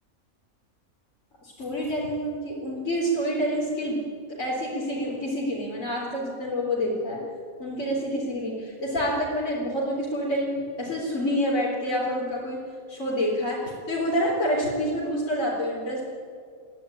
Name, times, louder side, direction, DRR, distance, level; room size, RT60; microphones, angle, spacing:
voice 1, 1.4-4.0 4.4-7.2 7.6-12.6 12.9-16.0, equal, 60° left, -6 dB, 4.3 m, -27 dB
22.0 x 15.5 x 10.0 m, 2.1 s
omnidirectional pair, 1.5 m